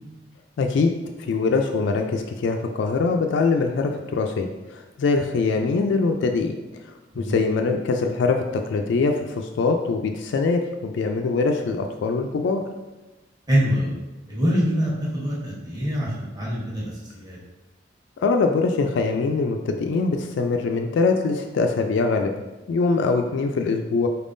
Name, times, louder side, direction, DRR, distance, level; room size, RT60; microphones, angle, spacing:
voice 1, 0.6-0.9 1.3-6.6 7.2-12.6 18.2-22.3 22.7-24.1, left 4 dB, 70° left, 4 dB, 0.3 m, -23 dB
voice 2, 13.5-13.9 14.3-17.4, equal, 20° right, -7 dB, 1.1 m, -24 dB
4.3 x 3.5 x 2.6 m, 1.1 s
head